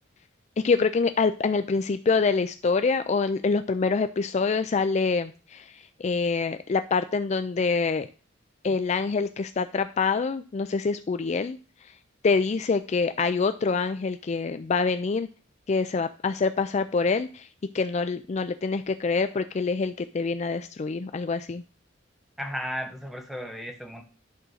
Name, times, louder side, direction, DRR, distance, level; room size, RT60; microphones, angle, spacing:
voice 1, 0.6-8.1 8.6-11.9 12.2-15.3 15.7-17.5 17.7-21.6, left 4 dB, 35° left, 11 dB, 0.4 m, -26 dB
voice 2, 22.4-24.0, equal, ahead, 4 dB, 1.3 m, -34 dB
11.0 x 3.7 x 6.3 m, 0.37 s
head